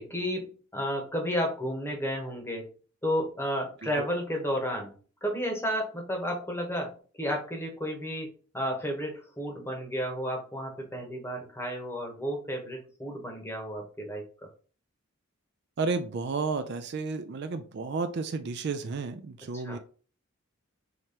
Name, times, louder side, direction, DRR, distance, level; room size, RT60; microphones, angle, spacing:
voice 1, 0.0-2.7 3.0-4.9 5.2-8.3 8.5-14.3 19.5-19.8, equal, 10° left, 2 dB, 1.0 m, -32 dB
voice 2, 15.8-19.8, right 4 dB, 50° right, 8 dB, 0.4 m, -32 dB
5.0 x 3.0 x 2.8 m, 0.39 s
head